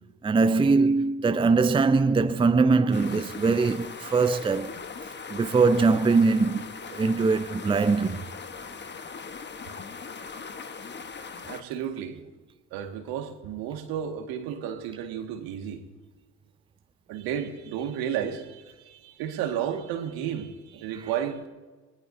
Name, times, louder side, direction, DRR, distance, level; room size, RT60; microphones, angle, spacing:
voice 1, 0.2-4.7 5.3-8.2, right 4 dB, 15° right, 0.6 m, -22 dB
sound 1, 2.9-11.6, left 5 dB, 30° left, 1.2 m, -40 dB
voice 2, 11.5-12.2 12.7-15.8 17.1-21.5, right 9 dB, 75° right, 1.9 m, -32 dB
22.0 x 19.0 x 2.7 m
hypercardioid pair, 60°, 37 cm